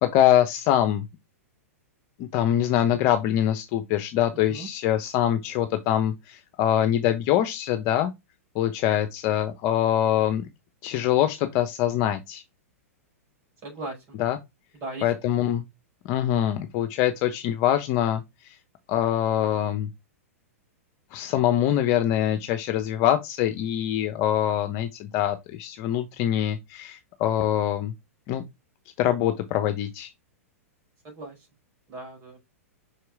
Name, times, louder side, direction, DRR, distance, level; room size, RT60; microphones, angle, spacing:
voice 1, 0.0-1.0 2.2-8.1 8.5-10.5 10.8-12.4 14.2-14.4 15.0-15.6 16.0-18.2 18.9-19.9 21.1-27.9 28.3-28.4 29.0-30.1, left 11 dB, 45° left, 0.9 m, -24 dB
voice 2, 13.6-14.2 14.7-15.0 31.0-31.4 31.9-32.4, right 2 dB, 35° right, 4.4 m, -37 dB
5.7 x 4.7 x 3.5 m
hypercardioid pair, 105°, 8 cm